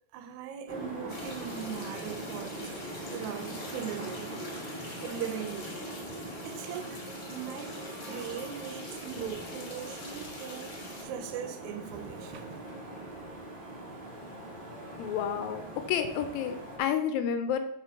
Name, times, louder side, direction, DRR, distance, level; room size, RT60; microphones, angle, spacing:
voice 1, 0.1-2.7 3.1-4.6 5.0-5.8 6.5-7.0 7.3-7.8 8.1-12.6, right 9 dB, 85° right, 2.0 m, -40 dB
sound 1, 0.7-16.8, right 1 dB, 50° right, 0.6 m, -42 dB
sound 2, 1.1-11.0, left 2 dB, 55° left, 0.5 m, -46 dB
voice 2, 15.0-15.6 15.9-17.6, left 8 dB, 80° left, 1.9 m, -30 dB
5.7 x 4.5 x 4.7 m
omnidirectional pair, 3.3 m